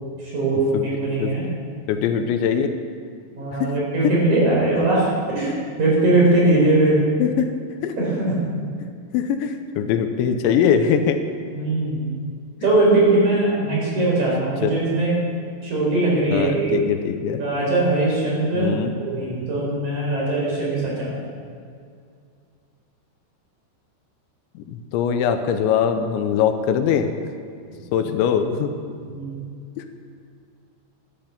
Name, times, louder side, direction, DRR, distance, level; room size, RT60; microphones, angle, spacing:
voice 1, 0.2-1.5 3.4-7.0 8.0-8.4 11.4-12.0 12.6-15.2 15.6-16.7 17.4-18.7 19.0-21.2 29.1-29.4, right 2 dB, 40° right, -4 dB, 5.3 m, -20 dB
voice 2, 1.9-2.7 3.5-3.7 7.2-7.5 7.8-8.0 9.1-11.2 14.6-14.7 16.3-17.4 18.5-18.9 24.6-27.1 27.9-28.7 29.8-29.9, left 8 dB, 85° left, 7 dB, 3.1 m, -22 dB
12.0 x 12.0 x 7.1 m, 2.3 s
omnidirectional pair, 5.3 m